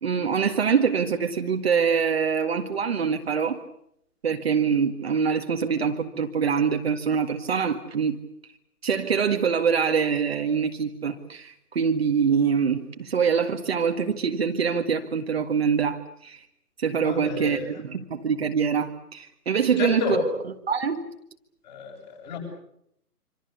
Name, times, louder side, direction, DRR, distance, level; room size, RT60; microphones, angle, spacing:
voice 1, 0.0-3.6 4.2-8.2 8.8-16.4 16.8-20.2 20.7-21.0, right 6 dB, 40° right, 1.8 m, -24 dB
voice 2, 17.0-17.7 19.8-20.2 21.6-22.4, left 6 dB, 30° left, 7.9 m, -30 dB
26.5 x 26.5 x 6.9 m
figure-of-eight pair, 145°, 47 cm